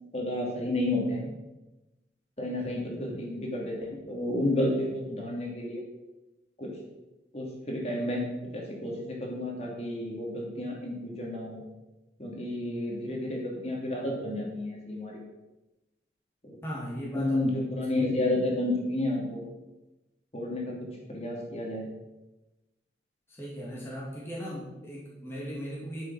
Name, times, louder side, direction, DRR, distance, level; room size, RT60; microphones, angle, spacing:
voice 1, 0.1-1.3 2.4-5.8 6.6-6.7 7.3-8.2 8.5-11.6 12.2-15.1 16.5-16.6 17.1-19.4 20.3-20.8 21.1-21.9, left 1 dB, 35° left, -2 dB, 2.7 m, -31 dB
voice 2, 2.6-3.0 16.6-17.5 17.9-18.0 23.3-26.1, equal, 15° left, -6 dB, 2.4 m, -38 dB
10.5 x 7.5 x 6.2 m, 1.0 s
head